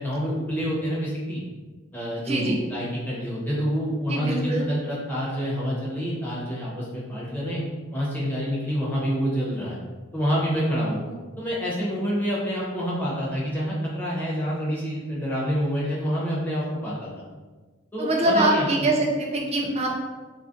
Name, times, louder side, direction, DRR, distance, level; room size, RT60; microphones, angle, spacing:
voice 1, 0.0-1.4 1.9-7.6 7.9-9.8 10.1-11.0 11.4-17.1 17.9-18.9, equal, 10° left, -7 dB, 0.7 m, -27 dB
voice 2, 4.1-4.7 18.0-20.0, right 1 dB, 30° right, -1 dB, 0.4 m, -23 dB
2.4 x 2.1 x 3.7 m, 1.3 s
head